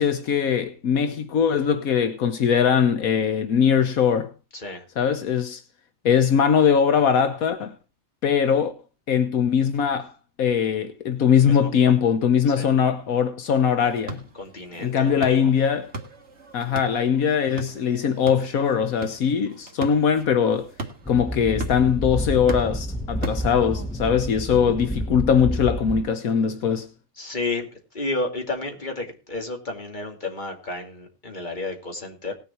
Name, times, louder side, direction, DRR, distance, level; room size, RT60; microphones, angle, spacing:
voice 1, 0.0-4.3 5.0-5.6 6.0-7.7 8.2-8.7 9.1-10.1 10.4-14.2 14.8-15.9 16.5-20.7 21.1-26.9, left 7 dB, 80° left, 1.4 m, -21 dB
voice 2, 4.5-4.8 11.5-11.9 12.5-12.7 14.4-15.5 27.2-27.7 27.9-32.3, left 2 dB, 35° left, 2.7 m, -31 dB
sound 1, 13.8-24.0, right 2 dB, 55° right, 2.0 m, -39 dB
sound 2, 21.0-26.0, equal, 5° left, 0.9 m, -30 dB
18.5 x 7.1 x 4.3 m
omnidirectional pair, 1.5 m